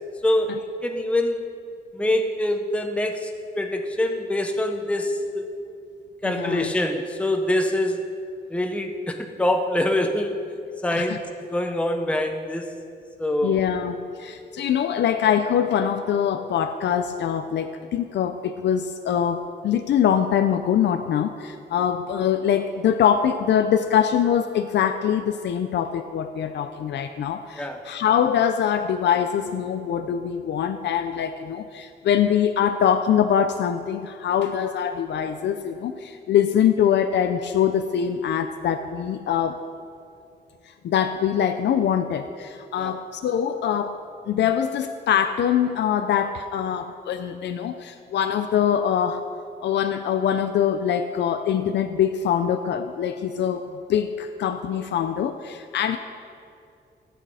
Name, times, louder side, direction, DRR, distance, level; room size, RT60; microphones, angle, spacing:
voice 1, 0.2-1.4 1.9-3.3 3.6-5.4 6.2-8.0 8.5-10.4 10.8-11.2 11.5-12.7 13.2-13.6 27.6-27.8 42.8-43.0, left 1 dB, 5° left, 4 dB, 0.8 m, -24 dB
voice 2, 6.2-6.7 10.9-11.2 13.4-39.6 40.8-44.0 44.3-49.2 49.6-56.0, left 9 dB, 90° left, 9 dB, 0.5 m, -23 dB
16.5 x 9.1 x 4.9 m, 2.4 s
wide cardioid pair, 130°, 18 cm